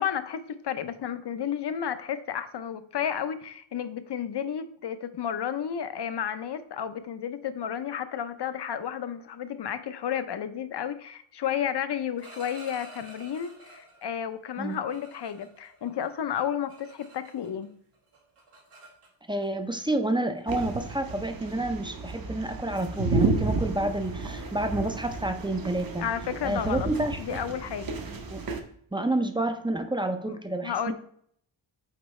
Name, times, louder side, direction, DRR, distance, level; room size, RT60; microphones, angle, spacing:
voice 1, 0.0-17.7 26.0-26.9 27.2-27.9 30.3-30.9, left 8 dB, 55° left, 12 dB, 0.6 m, -32 dB
sound 1, 12.0-14.1 14.6-17.7 17.9-19.5 20.4-20.5 20.9-21.2 21.6-21.9 22.2-22.5 22.8-23.0 23.3-28.7, right 1 dB, 90° right, 1.7 m, -52 dB
voice 2, 19.3-26.0 26.4-27.4 28.3-28.4 28.9-30.9, right 1 dB, 10° right, 7 dB, 0.4 m, -29 dB
sound 2, 20.5-28.6, right 3 dB, 45° right, 0.8 m, -32 dB
8.0 x 4.5 x 3.1 m, 0.64 s
wide cardioid pair, 180°, 50 cm